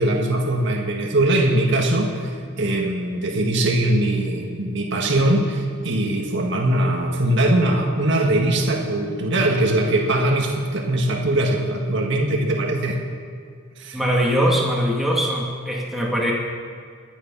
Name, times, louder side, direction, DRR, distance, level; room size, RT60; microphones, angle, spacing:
voice 1, 0.0-2.3 2.6-13.0 13.8-14.0, right 1 dB, 55° right, 1 dB, 1.7 m, -21 dB
voice 2, 13.9-16.3, equal, ahead, -4 dB, 2.5 m, -21 dB
22.5 x 9.9 x 5.7 m, 2.1 s
head